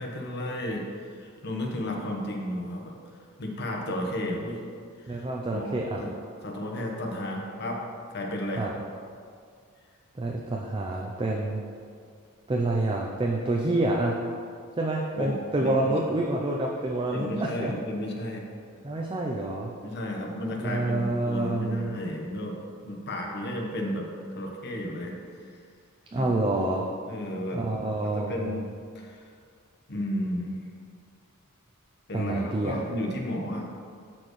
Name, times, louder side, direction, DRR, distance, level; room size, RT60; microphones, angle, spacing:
voice 1, 0.0-3.0 3.4-4.6 5.0-5.3 5.5-5.7 6.0-6.2 6.4-7.8 8.1-8.7 15.1-16.3 17.1-18.4 19.8-24.0 24.3-25.1 26.2-26.3 27.1-27.6 28.1-28.6 28.9-29.2 29.9-30.6 32.1-33.7, left 1 dB, 50° left, 0 dB, 1.1 m, -33 dB
voice 2, 5.1-6.0 8.6-8.7 10.2-11.6 12.5-14.2 14.8-17.7 18.8-19.7 20.6-22.0 26.1-26.8 27.5-28.6 32.1-32.8, right 2 dB, 25° right, -1 dB, 0.5 m, -28 dB
13.0 x 4.5 x 3.2 m, 2.2 s
head